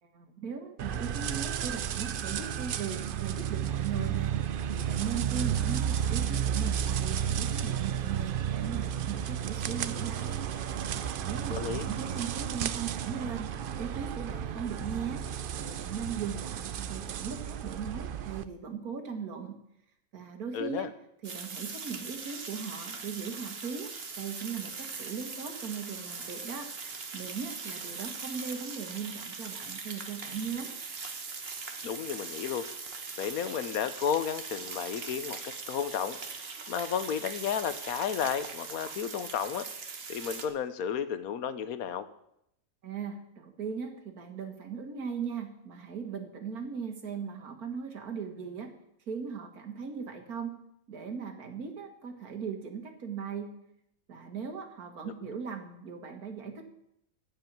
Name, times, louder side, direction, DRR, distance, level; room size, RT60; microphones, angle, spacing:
voice 1, 0.0-19.6 20.1-20.9 21.2-30.7 42.8-48.7 49.1-50.6 50.9-53.5 54.1-56.7, right 6 dB, 90° right, 5 dB, 2.1 m, -39 dB
sound 1, 0.8-18.4, right 9 dB, 65° right, 0.5 m, -32 dB
voice 2, 11.5-11.9 20.5-20.9 31.8-32.7 33.2-39.6 40.1-42.1 55.0-55.1, left 8 dB, 80° left, 12 dB, 1.3 m, -33 dB
sound 2, 21.2-40.5, right 4 dB, 45° right, 1.4 m, -41 dB
15.0 x 5.5 x 8.8 m, 0.78 s
omnidirectional pair, 1.5 m